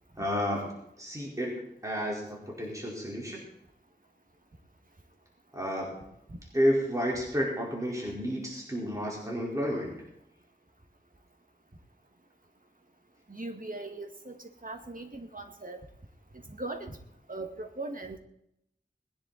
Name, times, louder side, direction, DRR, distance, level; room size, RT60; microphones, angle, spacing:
voice 1, 0.2-0.7 1.0-1.5 1.8-3.4 5.5-6.0 6.5-9.9, equal, 20° right, -3 dB, 4.5 m, -31 dB
voice 2, 13.3-15.8 16.5-17.0 17.3-18.2, right 2 dB, 50° right, 4 dB, 2.2 m, -39 dB
20.5 x 10.5 x 4.3 m, 0.76 s
wide cardioid pair, 45°, 18 cm